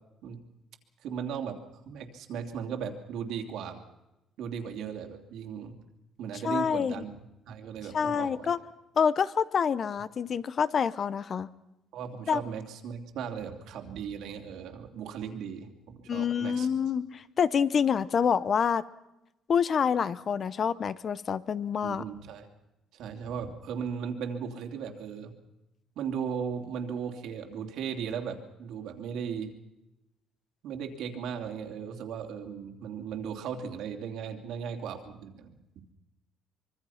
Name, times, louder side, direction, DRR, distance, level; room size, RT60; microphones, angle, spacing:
voice 1, 1.0-1.6 1.9-3.8 4.4-5.8 6.2-7.1 7.5-8.5 11.9-16.7 21.8-22.5 22.9-25.3 26.0-29.5 30.6-35.6, right 7 dB, 70° right, 4 dB, 2.9 m, -37 dB
voice 2, 6.4-7.0 7.9-8.6 9.0-11.5 12.3-12.4 16.1-18.8 19.5-22.0, left 7 dB, 40° left, 16 dB, 0.8 m, -27 dB
24.5 x 23.5 x 5.8 m, 0.92 s
cardioid pair, 135°, 0 cm